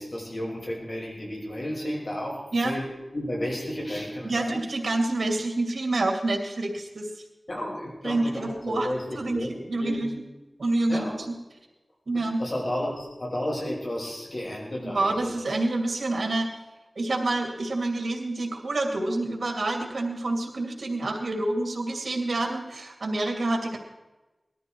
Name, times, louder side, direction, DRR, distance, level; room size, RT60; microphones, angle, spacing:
voice 1, 0.0-4.5 7.5-10.1 10.9-11.1 12.4-15.3, left 1 dB, 50° left, -3 dB, 6.2 m, -32 dB
voice 2, 4.2-7.1 8.0-8.9 9.2-10.1 10.6-11.3 12.1-12.4 14.8-16.5 17.0-23.8, right 2 dB, 85° right, 2 dB, 2.5 m, -27 dB
20.0 x 13.0 x 4.6 m, 1.1 s
wide cardioid pair, 65°, 0 cm